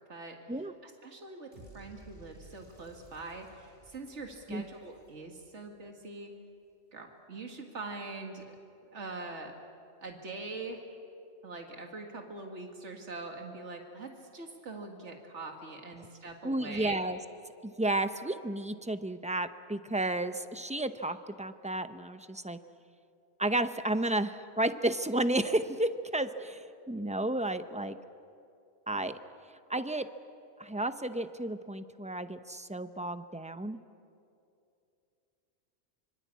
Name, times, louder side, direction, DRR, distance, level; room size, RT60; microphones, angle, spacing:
voice 1, 0.8-6.3 6.9-8.6 8.9-9.5 10.0-10.8 11.4-17.0, right 3 dB, 90° right, 3 dB, 2.2 m, -43 dB
sound 1, 1.5-5.6, right 1 dB, 45° right, 6.3 m, -56 dB
voice 2, 16.4-17.2 17.6-22.6 23.4-26.6 26.9-28.0 28.9-29.2 29.7-30.1 30.6-33.8, right 1 dB, 5° right, 10 dB, 0.7 m, -32 dB
25.5 x 25.0 x 8.5 m, 2.6 s
omnidirectional pair, 1.2 m